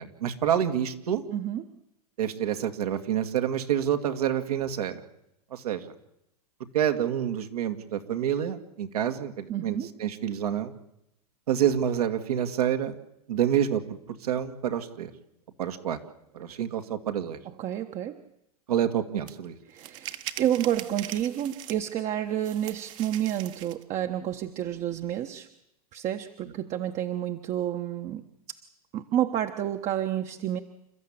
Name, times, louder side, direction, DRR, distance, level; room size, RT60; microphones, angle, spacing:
voice 1, 0.0-1.2 2.2-5.0 5.5-5.8 6.7-10.7 11.5-12.9 13.3-13.8 14.2-15.1 15.6-16.0 16.3-17.4 18.7-19.5, right 9 dB, 75° right, 6 dB, 2.1 m, -27 dB
voice 2, 1.3-1.6 9.5-9.9 17.5-18.2 19.7-25.5 25.9-28.2 28.9-30.6, right 11 dB, 35° right, 6 dB, 1.2 m, -30 dB
sound 1, 19.3-19.4 19.8-22.0 22.4-23.8, right 14 dB, 55° right, 1.6 m, -41 dB
28.5 x 13.5 x 8.8 m, 0.83 s
hypercardioid pair, 100°, 20 cm